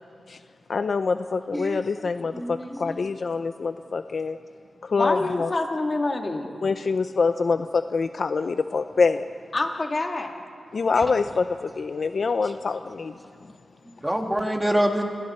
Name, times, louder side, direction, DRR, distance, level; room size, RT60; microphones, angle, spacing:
voice 1, 0.7-4.4 4.8-5.5 6.6-9.2 10.7-13.2, left 4 dB, 55° left, 9 dB, 0.5 m, -25 dB
voice 2, 2.3-3.0 14.0-15.0, equal, 10° right, 3 dB, 1.8 m, -25 dB
voice 3, 5.0-6.5 9.5-10.3, left 2 dB, 30° left, 3 dB, 2.1 m, -26 dB
29.0 x 26.5 x 4.4 m, 2.4 s
wide cardioid pair, 125°, 0 cm